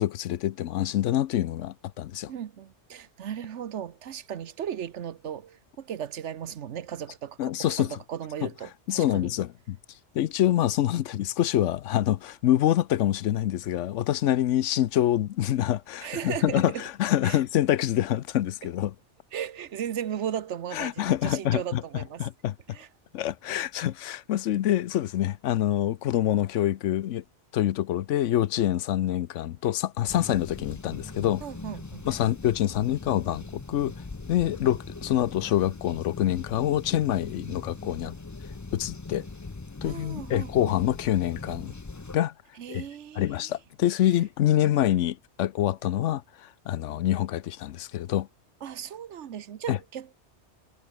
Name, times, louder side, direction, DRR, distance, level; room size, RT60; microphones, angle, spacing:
voice 1, 0.0-2.3 7.4-8.0 8.9-9.8 10.1-18.9 20.7-21.8 22.2-22.5 23.1-27.2 27.5-31.4 32.1-33.9 34.3-38.1 38.7-39.2 39.8-41.7 42.1-42.3 42.7-42.8 43.2-48.3 49.7-49.8, left 12 dB, 85° left, 1.0 m, -26 dB
voice 2, 2.3-9.3 16.0-16.8 17.2-17.4 19.3-22.2 22.7-22.9 31.4-32.0 39.8-40.7 42.6-43.5 48.6-50.3, right 9 dB, 75° right, 1.2 m, -36 dB
sound 1, 30.1-42.2, left 3 dB, 20° left, 0.5 m, -41 dB
omnidirectional pair, 1.2 m